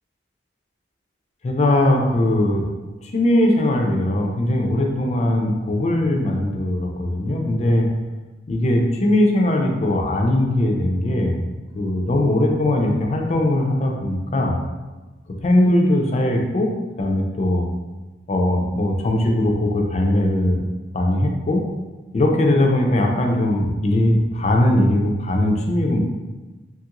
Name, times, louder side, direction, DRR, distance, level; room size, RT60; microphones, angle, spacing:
voice 1, 1.4-2.6 3.1-7.9 8.5-11.4 11.7-14.5 15.4-16.7 17.0-17.7 18.3-20.6 20.9-21.6 22.1-26.0, left 1 dB, 35° left, 1 dB, 0.4 m, -20 dB
2.9 x 2.4 x 2.9 m, 1.2 s
head